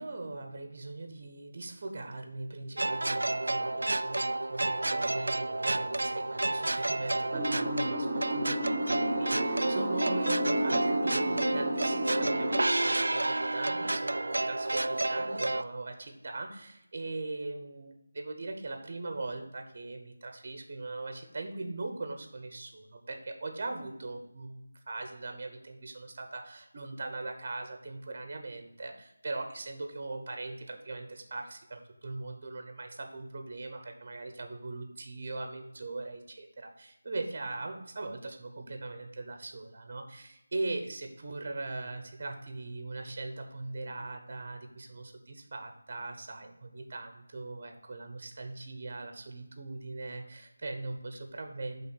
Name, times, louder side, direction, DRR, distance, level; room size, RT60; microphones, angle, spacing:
voice 1, 0.0-51.8, right 2 dB, 35° right, 5 dB, 1.0 m, -40 dB
sound 1, 2.8-15.6, right 2 dB, 90° right, 0.3 m, -30 dB
sound 2, 7.3-12.6, equal, ahead, 1.2 m, -32 dB
9.7 x 3.8 x 5.7 m, 0.88 s
figure-of-eight pair, 175°, 0 cm